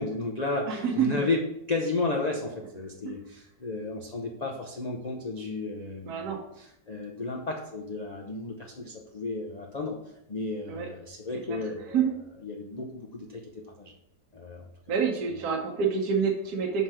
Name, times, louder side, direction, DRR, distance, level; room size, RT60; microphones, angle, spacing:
voice 1, 0.0-1.4 1.7-6.3 6.6-10.0 10.3-12.1 12.4-13.9 14.3-14.7, left 3 dB, 55° left, 0 dB, 0.4 m, -33 dB
voice 2, 0.7-1.1 3.0-3.1 6.1-6.4 10.7-10.9 11.5-12.1 14.9-16.8, right 6 dB, 65° right, 0 dB, 1.3 m, -27 dB
5.9 x 5.5 x 4.8 m, 0.82 s
omnidirectional pair, 1.9 m